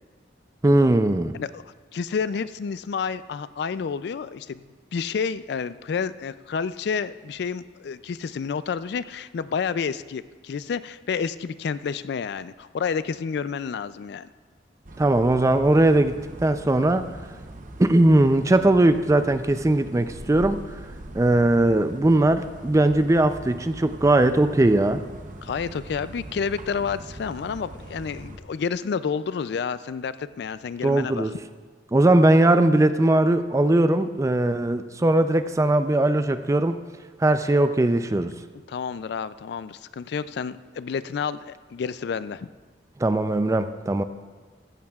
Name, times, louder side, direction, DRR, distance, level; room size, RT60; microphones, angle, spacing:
voice 1, 0.6-1.3 15.0-17.1 17.8-20.6 21.1-25.0 30.8-31.3 31.9-36.8 37.2-38.3 43.0-44.0, right 1 dB, 20° right, 10 dB, 0.4 m, -19 dB
voice 2, 1.9-4.6 4.9-14.3 25.4-31.3 38.5-42.5, left 6 dB, 65° left, 15 dB, 0.3 m, -30 dB
sound 1, 14.8-28.4, right 1 dB, 45° right, 0.8 m, -41 dB
15.0 x 14.5 x 2.4 m, 1.5 s
head